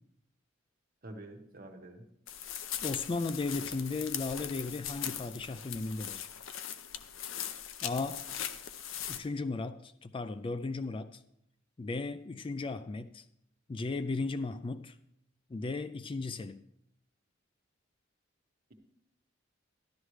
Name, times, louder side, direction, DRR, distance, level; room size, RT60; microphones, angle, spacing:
voice 1, 1.0-2.1, right 1 dB, 45° right, 1.3 m, -47 dB
sound 1, 2.3-9.2, left 9 dB, 75° left, 0.7 m, -40 dB
voice 2, 2.8-6.3 7.8-8.2 9.1-11.2 11.8-13.2 13.7-15.0 15.5-16.7, left 3 dB, 25° left, 0.3 m, -36 dB
12.5 x 11.5 x 3.2 m
head